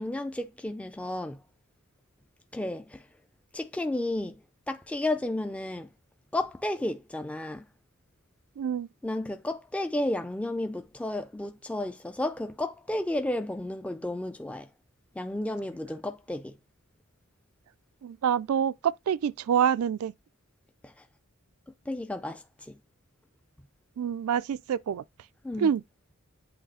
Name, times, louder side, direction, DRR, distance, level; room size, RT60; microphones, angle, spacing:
voice 1, 0.0-1.4 2.5-3.0 3.5-4.3 4.7-5.9 6.3-7.7 9.0-14.7 15.2-16.6 20.8-20.9 21.9-22.8 25.4-25.7, left 1 dB, 5° left, 0.4 m, -32 dB
voice 2, 8.6-8.9 18.0-20.1 24.0-25.0 25.6-25.8, right 8 dB, 85° right, 0.3 m, -26 dB
8.0 x 3.1 x 4.8 m
head